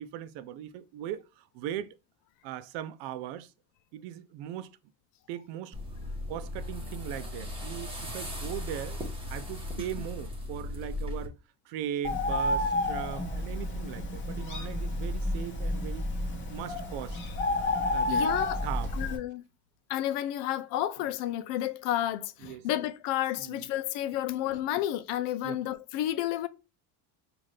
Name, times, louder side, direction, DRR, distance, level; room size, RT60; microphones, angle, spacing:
voice 1, 0.0-1.9 2.4-3.5 3.9-4.7 5.3-5.8 6.3-9.0 9.3-11.3 11.7-16.1 16.5-17.2 17.9-18.9 22.4-22.7 23.4-23.7 25.4-25.6, right 11 dB, 85° right, 0.6 m, -39 dB
sound 1, 5.7-11.3, left 1 dB, 15° right, 1.0 m, -37 dB
Bird, 12.0-19.2, left 2 dB, 30° left, 1.1 m, -30 dB
voice 2, 18.1-18.6 18.9-19.4 19.9-26.5, left 12 dB, 90° left, 0.6 m, -31 dB
5.6 x 2.6 x 3.3 m
cardioid pair, 150°, 40 cm